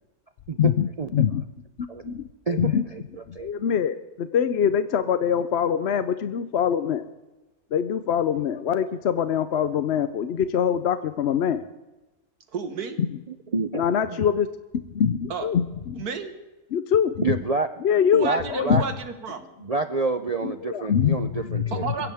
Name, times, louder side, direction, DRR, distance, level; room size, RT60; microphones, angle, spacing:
voice 1, 0.6-1.4 1.8-2.8 3.3-7.1 7.7-11.6 13.1-13.2 13.7-14.5 14.7-16.0 16.7-17.4 17.8-18.8 20.4-21.9, left 8 dB, 55° left, 11 dB, 0.8 m, -24 dB
voice 2, 2.5-3.0 3.3-3.5 13.3-13.8 14.1-14.3 17.2-17.7 18.2-18.8 19.6-21.9, right 3 dB, 55° right, 8 dB, 0.4 m, -28 dB
voice 3, 12.5-13.0 15.3-15.5 16.0-16.3 18.1-19.5 21.7-22.1, right 5 dB, 85° right, 8 dB, 2.0 m, -31 dB
22.5 x 16.0 x 3.5 m, 1.1 s
omnidirectional pair, 1.6 m